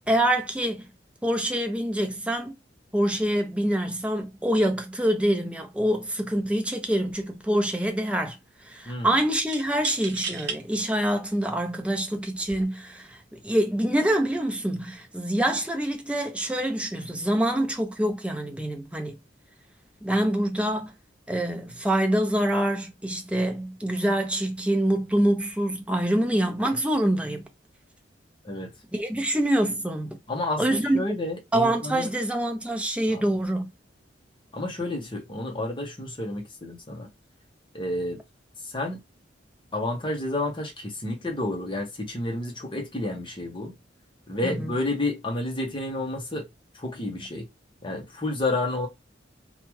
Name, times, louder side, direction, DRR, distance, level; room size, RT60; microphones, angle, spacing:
voice 1, 0.1-0.9 1.2-2.6 2.9-8.4 8.7-13.2 13.4-19.2 20.0-20.9 21.3-27.4 28.9-30.2 30.6-31.0 31.5-33.7 44.4-44.7, right 1 dB, 5° right, 0.5 m, -25 dB
sound 1, 6.3-6.6 6.9-7.5 9.5-10.6 11.3-11.4 12.3-12.6, right 5 dB, 60° right, 0.8 m, -35 dB
voice 2, 8.9-9.2 28.4-28.7 30.3-32.1 33.1-33.2 34.5-37.1 37.7-38.2 38.7-39.0 39.7-43.7 44.3-46.5 46.8-47.5 47.8-48.9, left 2 dB, 25° left, 0.8 m, -30 dB
2.7 x 2.3 x 3.0 m
head